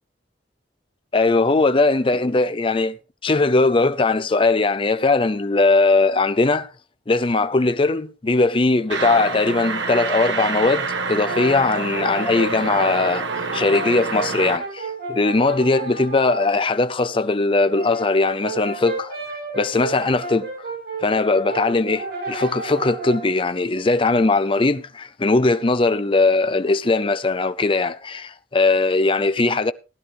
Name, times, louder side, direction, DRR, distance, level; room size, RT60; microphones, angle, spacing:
voice 1, 1.1-3.0 3.2-6.7 7.1-20.5 21.0-29.7, left 3 dB, 30° left, 0.5 m, -20 dB
sound 1, 8.9-14.6, right 4 dB, 85° right, 1.4 m, -27 dB
Brass instrument, 11.0-16.5 17.5-23.3, right 3 dB, 55° right, 7.5 m, -32 dB
16.5 x 11.0 x 3.3 m
head